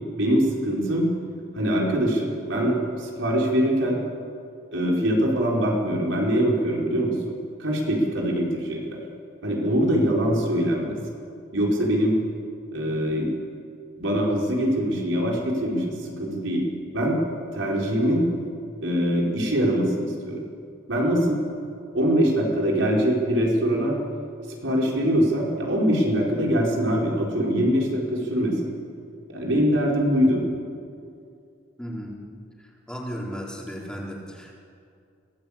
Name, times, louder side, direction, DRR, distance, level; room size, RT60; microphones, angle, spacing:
voice 1, 0.2-1.1 1.5-4.0 4.7-7.3 7.6-9.0 9.4-10.9 11.5-12.2 12.7-13.3 14.0-16.6 16.9-17.2 17.5-18.3 18.8-20.4 20.9-21.4 21.9-24.0 24.6-28.6 29.3-30.4, equal, 85° right, -1 dB, 4.7 m, -23 dB
voice 2, 31.8-32.1 32.6-34.5, equal, 5° left, -3 dB, 3.9 m, -35 dB
24.5 x 17.0 x 8.7 m, 2.4 s
head